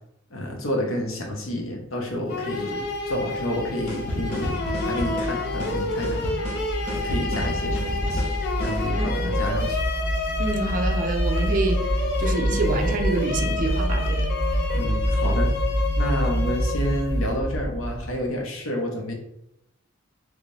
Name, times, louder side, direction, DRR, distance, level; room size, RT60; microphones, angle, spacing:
voice 1, 0.3-4.6 4.8-6.5 6.8-8.2 8.6-9.8 14.7-15.5 16.0-19.1, left 1 dB, 75° left, 0 dB, 0.8 m, -29 dB
sound 1, 2.3-17.4, left 3 dB, 55° left, 0.5 m, -30 dB
sound 2, 2.9-18.2, equal, 5° left, 1.1 m, -27 dB
sound 3, 3.9-8.8, left 1 dB, 30° left, 1.1 m, -32 dB
voice 2, 8.9-9.3 10.4-11.9 12.2-14.3, right 3 dB, 40° right, 4 dB, 0.4 m, -27 dB
3.2 x 2.6 x 3.2 m, 0.81 s
head